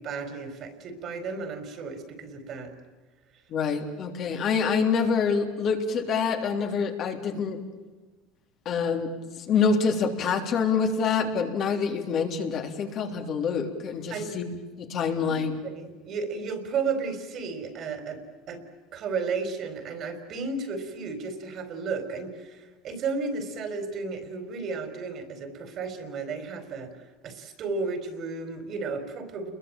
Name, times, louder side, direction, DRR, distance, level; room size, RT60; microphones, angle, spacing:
voice 1, 0.0-2.7 14.1-14.4 15.2-15.4 15.7-18.2 18.5-18.6 18.9-26.9 27.2-29.5, right 4 dB, 45° right, 8 dB, 4.5 m, -33 dB
voice 2, 3.5-7.6 8.7-9.1 9.4-14.5 14.8-15.6, left 5 dB, 45° left, 3 dB, 3.5 m, -26 dB
29.0 x 22.0 x 9.0 m, 1.2 s
supercardioid pair, 120°, 0 cm